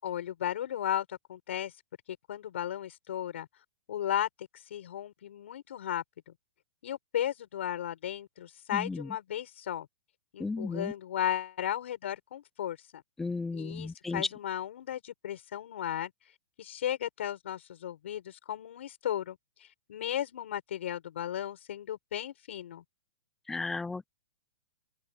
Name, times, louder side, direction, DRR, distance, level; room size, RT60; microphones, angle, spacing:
voice 1, 0.0-1.7 2.3-3.5 3.9-6.0 6.8-9.9 10.3-13.0 13.5-16.1 16.6-22.8, left 11 dB, 60° left, 6.6 m, -35 dB
voice 2, 8.7-9.1 10.4-10.9 13.2-14.3 23.5-24.1, left 3 dB, 5° left, 0.4 m, -34 dB
open air
hypercardioid pair, 170°, 7 cm